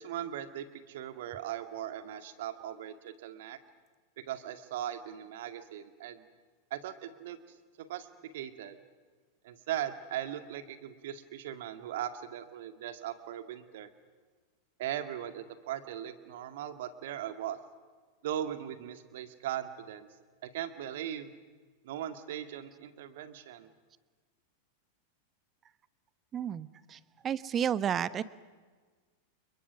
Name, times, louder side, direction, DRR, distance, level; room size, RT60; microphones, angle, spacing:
voice 1, 0.0-3.6 4.3-6.3 6.7-7.4 7.8-8.1 8.3-8.8 9.4-13.9 14.8-17.6 18.2-20.1 20.4-21.3 21.8-23.7, right 11 dB, 55° right, 9 dB, 2.1 m, -39 dB
voice 2, 26.3-28.2, right 9 dB, 25° right, 17 dB, 1.0 m, -32 dB
30.0 x 29.5 x 6.3 m, 1.4 s
figure-of-eight pair, 90°, 0 cm